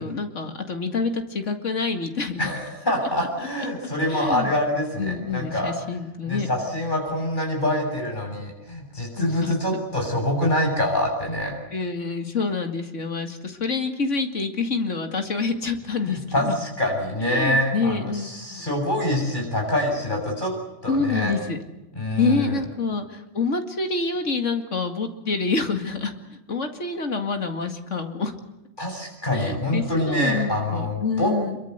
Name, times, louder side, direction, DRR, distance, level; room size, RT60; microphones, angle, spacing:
voice 1, 0.0-2.5 4.1-4.5 5.0-6.5 9.2-9.8 11.7-16.6 17.3-18.7 20.9-21.6 22.2-28.3 29.3-31.6, left 4 dB, 90° left, 6 dB, 2.6 m, -27 dB
voice 2, 2.4-5.7 6.3-11.5 16.0-20.5 20.8-21.3 21.9-22.6 28.8-31.3, left 1 dB, 40° left, 1 dB, 7.8 m, -25 dB
25.5 x 23.0 x 8.1 m, 0.93 s
omnidirectional pair, 1.2 m